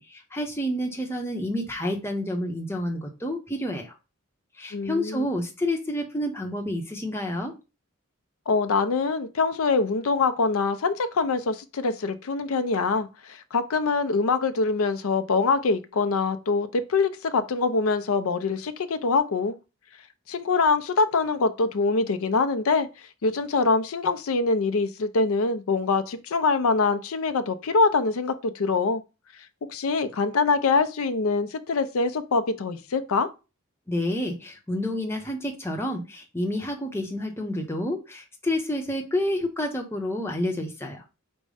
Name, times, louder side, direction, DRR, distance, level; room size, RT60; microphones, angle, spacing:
voice 1, 0.0-3.9 4.6-7.5 33.9-41.0, left 1 dB, 10° left, 0.7 m, -29 dB
voice 2, 4.7-5.3 8.5-19.5 20.3-22.9 23.2-29.0 29.7-33.3, left 4 dB, 75° left, 0.5 m, -24 dB
5.2 x 2.1 x 4.8 m
head